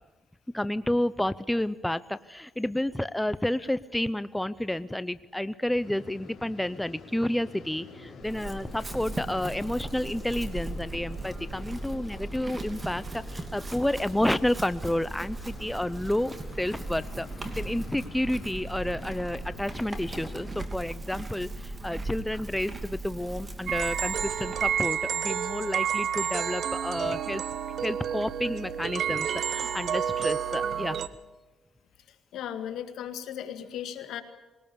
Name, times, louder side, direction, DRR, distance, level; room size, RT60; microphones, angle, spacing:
voice 1, 0.5-17.3 17.6-27.4 27.8-31.0, left 1 dB, 5° left, 15 dB, 0.6 m, -30 dB
sound 1, 5.8-20.6, left 4 dB, 50° left, 3.7 m, -47 dB
Chewing mastication / Livestock farm animals working animals, 8.2-24.8, right 2 dB, 25° right, 2.6 m, -38 dB
sound 2, 23.7-31.1, right 8 dB, 65° right, 0.9 m, -30 dB
voice 2, 32.1-34.2, left 9 dB, 80° left, 7 dB, 1.9 m, -37 dB
20.5 x 19.0 x 7.0 m, 1.2 s
cardioid pair, 90°, 0 cm